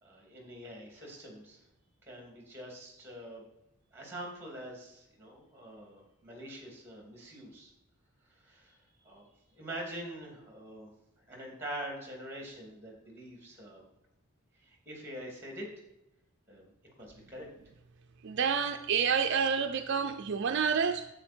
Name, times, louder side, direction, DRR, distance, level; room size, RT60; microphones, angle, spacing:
voice 1, 0.0-1.6 2.1-3.4 3.9-7.7 8.3-10.9 11.2-13.8 14.6-15.7 16.5-16.7 17.0-17.5, right 1 dB, 10° right, 2.7 m, -45 dB
voice 2, 18.2-21.1, right 6 dB, 55° right, 0.4 m, -29 dB
10.0 x 8.2 x 4.4 m
head